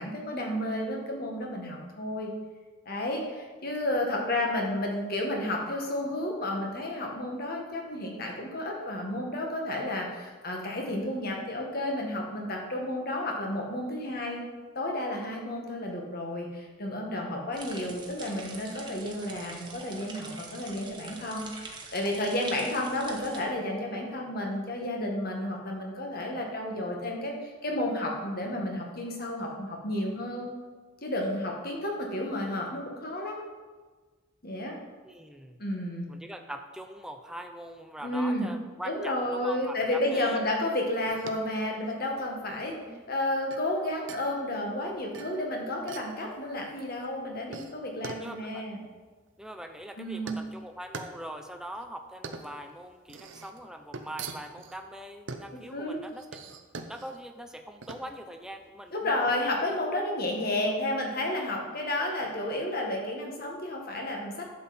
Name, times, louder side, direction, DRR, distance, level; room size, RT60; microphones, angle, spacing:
voice 1, 0.0-2.3 2.9-14.5 14.8-30.5 31.0-33.4 34.4-34.8 35.6-36.1 38.0-38.6 38.9-42.8 43.1-48.8 50.0-50.4 55.7-56.0 58.9-64.4, left 1 dB, 50° left, 0 dB, 1.8 m, -31 dB
sound 1, 17.5-23.4, right 3 dB, 25° right, 1.3 m, -44 dB
voice 2, 35.0-35.6 36.1-40.5 42.5-43.0 47.2-47.3 48.2-48.6 49.4-56.4 56.9-59.3 60.7-60.8 62.0-62.3, right 1 dB, 5° right, 5 dB, 0.6 m, -42 dB
sound 2, 41.0-59.8, right 4 dB, 70° right, 0.8 m, -45 dB
11.5 x 7.6 x 4.3 m, 1.4 s
head